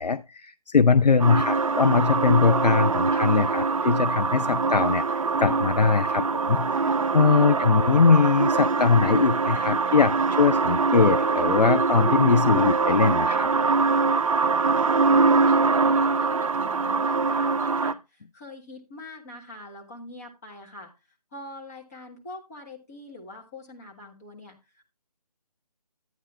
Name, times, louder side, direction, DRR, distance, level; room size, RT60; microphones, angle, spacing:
voice 1, 0.0-5.0 5.4-13.5, left 5 dB, 85° left, 0.5 m, -21 dB
sound 1, 1.2-17.9, right 4 dB, 55° right, 0.4 m, -23 dB
voice 2, 14.8-20.9 21.3-24.9, left 2 dB, 25° left, 1.4 m, -44 dB
11.0 x 9.3 x 2.4 m
figure-of-eight pair, 155°, 20 cm